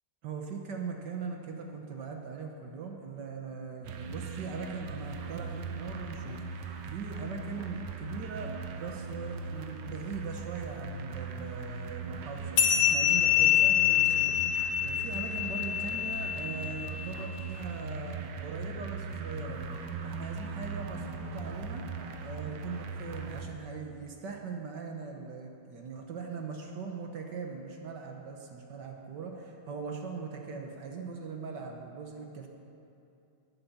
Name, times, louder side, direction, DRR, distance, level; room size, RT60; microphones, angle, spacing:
voice 1, 0.2-19.6 20.0-21.8 22.2-32.5, right 5 dB, 65° right, 3 dB, 1.5 m, -40 dB
sound 1, 3.8-23.4, right 4 dB, 90° right, 1.7 m, -40 dB
sound 2, 12.6-17.4, left 10 dB, 80° left, 2.0 m, -26 dB
Bowed string instrument, 18.4-23.2, right 2 dB, 5° left, 2.0 m, -48 dB
11.0 x 9.2 x 7.1 m, 2.7 s
omnidirectional pair, 2.2 m